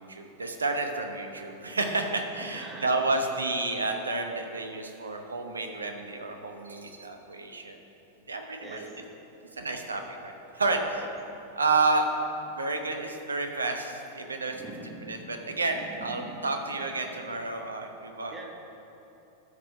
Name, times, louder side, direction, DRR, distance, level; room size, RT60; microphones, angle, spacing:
voice 1, 0.0-7.8 8.3-8.8 9.5-11.1 11.5-12.1 12.5-14.6 15.1-18.3, right 3 dB, 75° right, 4 dB, 0.9 m, -30 dB
voice 2, 2.4-2.9 8.6-9.0 14.5-16.5 17.0-17.2 18.3-18.4, right 2 dB, 15° right, -1 dB, 1.4 m, -44 dB
13.0 x 4.9 x 5.0 m, 2.9 s
figure-of-eight pair, 90°, 0 cm